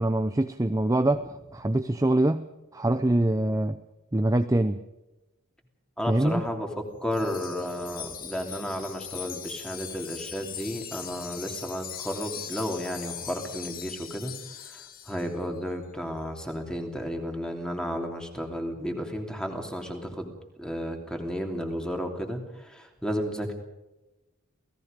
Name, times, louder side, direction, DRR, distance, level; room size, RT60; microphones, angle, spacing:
voice 1, 0.0-3.8 4.1-4.8 6.1-6.4, right 1 dB, 15° right, 9 dB, 0.6 m, -24 dB
voice 2, 6.0-6.7 7.0-14.3 14.6-23.5, equal, 5° left, 3 dB, 3.0 m, -33 dB
Wind chime, 7.1-15.3, left 9 dB, 45° left, 2.0 m, -40 dB
28.5 x 17.5 x 5.3 m, 1.0 s
head